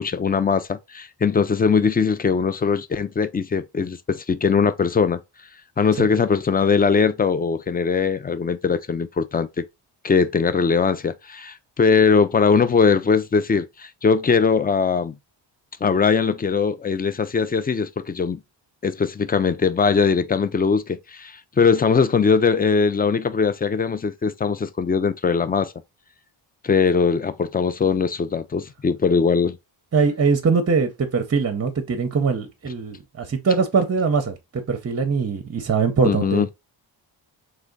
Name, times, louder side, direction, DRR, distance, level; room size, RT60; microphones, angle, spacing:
voice 1, 0.0-5.2 5.8-9.6 10.0-15.1 15.8-18.4 18.8-25.7 26.6-29.6 36.0-36.5, left 5 dB, 20° left, 0.4 m, -20 dB
voice 2, 29.9-36.5, right 5 dB, 30° right, 0.7 m, -22 dB
3.4 x 3.3 x 3.8 m
wide cardioid pair, 110°, 47 cm